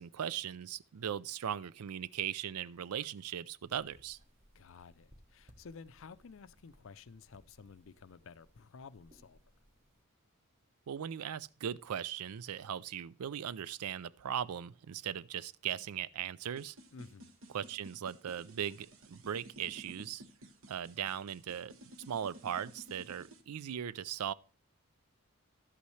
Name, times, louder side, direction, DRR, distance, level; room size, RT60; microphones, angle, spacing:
voice 1, 0.0-4.2 10.9-16.8 17.5-20.2 20.7-21.7 22.1-24.3, right 9 dB, 85° right, 0.4 m, -39 dB
sound 1, 3.6-10.0, equal, 30° right, 1.2 m, -65 dB
voice 2, 4.5-9.4 16.9-17.3, left 5 dB, 60° left, 0.5 m, -53 dB
sound 2, 16.6-23.4, right 1 dB, 65° right, 1.1 m, -54 dB
11.5 x 8.4 x 3.2 m
head